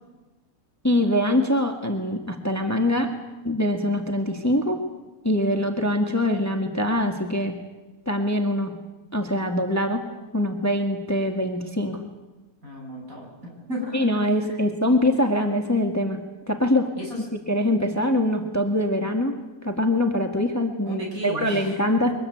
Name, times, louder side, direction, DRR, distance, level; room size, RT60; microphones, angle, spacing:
voice 1, 0.8-3.1 3.4-4.8 5.2-7.6 8.1-8.7 9.1-10.0 10.3-12.0 13.9-16.2 16.5-16.9 17.5-19.4 19.6-22.1, left 1 dB, 10° left, 3 dB, 1.8 m, -23 dB
voice 2, 12.6-14.1 14.4-14.6 17.0-17.3 20.9-21.8, equal, 60° right, 0 dB, 7.4 m, -34 dB
23.0 x 20.0 x 9.3 m, 1.2 s
omnidirectional pair, 1.7 m